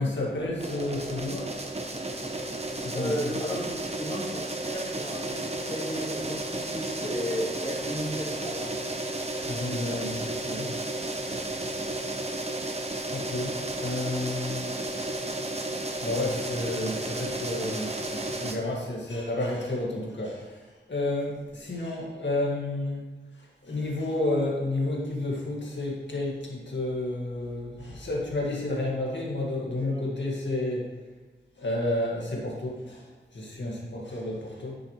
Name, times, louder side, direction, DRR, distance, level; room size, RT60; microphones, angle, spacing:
voice 1, 0.0-1.6 2.8-3.4 9.5-10.8 11.3-11.8 13.1-14.8 16.0-31.0 31.6-34.8, left 2 dB, 75° left, -3 dB, 1.9 m, -31 dB
sound 1, 0.6-18.6, right 2 dB, 35° right, 1.0 m, -33 dB
voice 2, 2.9-9.0 11.3-11.5 29.8-30.0, equal, 25° left, -8 dB, 2.1 m, -34 dB
9.8 x 7.2 x 3.2 m, 1.3 s
wide cardioid pair, 60°, 19 cm